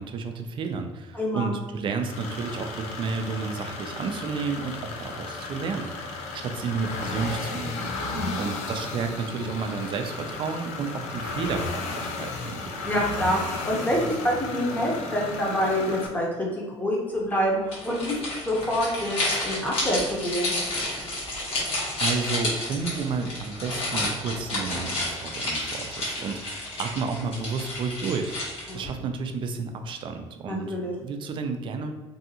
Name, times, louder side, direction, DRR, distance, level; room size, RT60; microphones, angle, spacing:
voice 1, 0.0-7.9 8.3-12.8 21.3-21.5 22.0-28.4 28.7-31.9, right 5 dB, 45° right, 6 dB, 0.4 m, -31 dB
voice 2, 1.1-1.5 8.1-8.4 12.8-18.2 18.4-20.6 28.7-28.8 30.5-30.9, equal, 15° left, -3 dB, 0.8 m, -27 dB
sound 1, 2.0-16.1, left 3 dB, 75° left, 0.5 m, -34 dB
sound 2, 17.7-28.9, left 1 dB, 60° left, 1.3 m, -31 dB
2.7 x 2.4 x 2.8 m, 1.3 s
cardioid pair, 110°, 11 cm